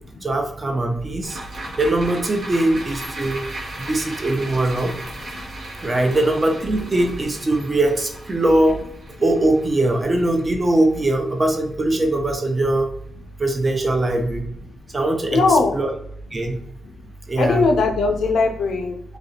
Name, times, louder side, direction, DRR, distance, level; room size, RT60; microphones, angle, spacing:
voice 1, 0.2-1.4 1.8-3.4 3.8-4.9 5.8-8.8 9.2-12.9 13.4-14.5 14.9-15.9 16.3-16.6 17.3-17.7, right 1 dB, 30° right, 3 dB, 0.5 m, -21 dB
sound 1, 1.2-11.7 12.1-12.2, right 1 dB, 80° right, 0.6 m, -36 dB
voice 2, 15.3-15.8 17.4-19.0, left 3 dB, 85° left, 4 dB, 0.3 m, -20 dB
2.4 x 2.0 x 2.7 m, 0.69 s
cardioid pair, 80°, 0 cm